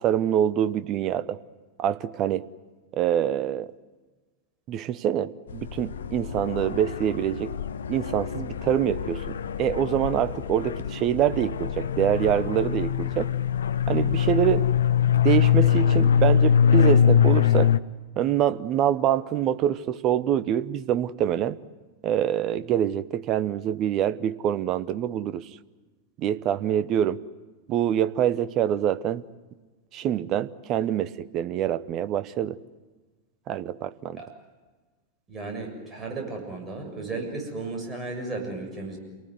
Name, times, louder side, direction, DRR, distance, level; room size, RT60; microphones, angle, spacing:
voice 1, 0.0-1.4 1.8-2.5 2.9-3.7 4.7-7.5 7.9-13.3 13.9-14.7 15.2-17.7 18.2-21.6 22.0-25.5 26.2-27.2 27.7-29.2 29.9-32.6 33.5-34.2, right 10 dB, 35° right, 15 dB, 0.9 m, -25 dB
sound 1, 5.5-17.8, left 8 dB, 65° left, 0.7 m, -23 dB
voice 2, 35.3-39.0, right 3 dB, 20° right, 1 dB, 7.0 m, -34 dB
28.0 x 19.0 x 9.6 m, 1.3 s
figure-of-eight pair, 90°, 0 cm